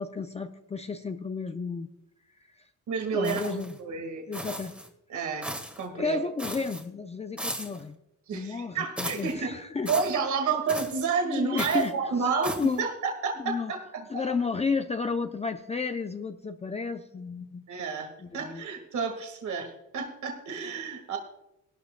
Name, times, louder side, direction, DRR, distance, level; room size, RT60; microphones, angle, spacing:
voice 1, 0.0-1.9 2.5-2.7 3.1-3.7 4.3-4.8 5.9-8.0 8.3-9.9 11.2-11.9 12.2-12.3 12.6-12.8 13.4-13.7 14.1-17.6 18.2-18.6, left 4 dB, 20° left, 7 dB, 0.5 m, -32 dB
voice 2, 2.9-4.2 5.1-5.5 5.8-6.2 8.3-9.6 9.9-14.3 17.7-21.2, right 5 dB, 70° right, 3 dB, 1.9 m, -30 dB
sound 1, 3.2-3.8 4.3-4.9 5.4-5.8 6.4-6.8 7.4-7.8 9.0-9.3 9.9-10.2 10.7-11.0 11.6-11.9 12.4-12.8, equal, 5° right, 1.6 m, -36 dB
18.0 x 12.5 x 2.2 m, 0.91 s
cardioid pair, 130°, 31 cm